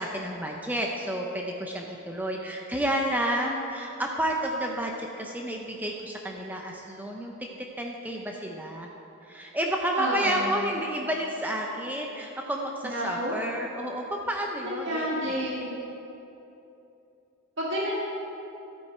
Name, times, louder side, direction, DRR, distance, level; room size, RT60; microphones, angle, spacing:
voice 1, 0.0-7.3 7.8-8.9 9.3-15.1, right 1 dB, 10° right, 0 dB, 0.6 m, -30 dB
voice 2, 10.0-10.6 12.8-13.3 14.6-15.8 17.6-18.0, equal, 55° right, -5 dB, 1.7 m, -29 dB
13.0 x 9.1 x 4.4 m, 2.9 s
head